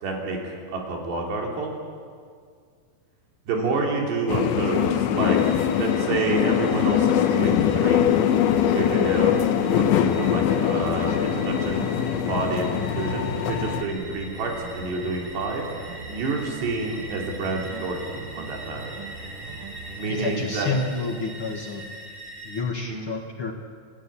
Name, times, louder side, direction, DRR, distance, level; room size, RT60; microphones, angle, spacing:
voice 1, 0.0-1.7 3.5-5.4 5.8-8.1 8.7-9.4 9.7-11.9 12.3-15.6 16.1-18.9 20.0-20.7 22.9-23.0, right 3 dB, 75° right, 0 dB, 5.3 m, -28 dB
sound 1, 4.3-13.8, left 10 dB, 90° left, 3.3 m, -22 dB
sound 2, 5.2-22.6, right 2 dB, 15° right, 4.5 m, -42 dB
sound 3, 8.0-20.4, right 4 dB, 55° right, 3.0 m, -40 dB
voice 2, 20.1-21.9 22.4-23.5, left 3 dB, 65° left, 2 dB, 1.3 m, -29 dB
28.5 x 15.5 x 10.0 m, 2.1 s
omnidirectional pair, 4.9 m